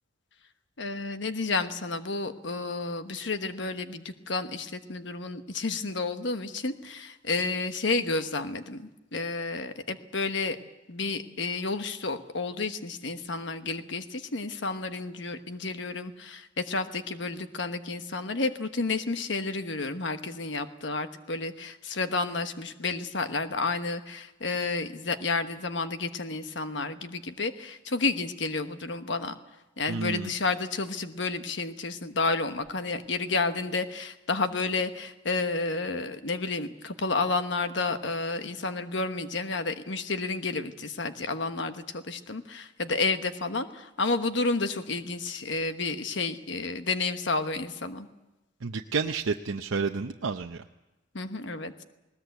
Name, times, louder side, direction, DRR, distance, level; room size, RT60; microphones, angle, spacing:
voice 1, 0.8-10.6 10.9-29.3 29.8-48.1 51.1-51.7, left 3 dB, 65° left, 9 dB, 1.2 m, -31 dB
voice 2, 29.9-30.3 48.6-50.6, right 4 dB, 85° right, 5 dB, 0.7 m, -30 dB
20.5 x 19.0 x 8.2 m, 1.0 s
head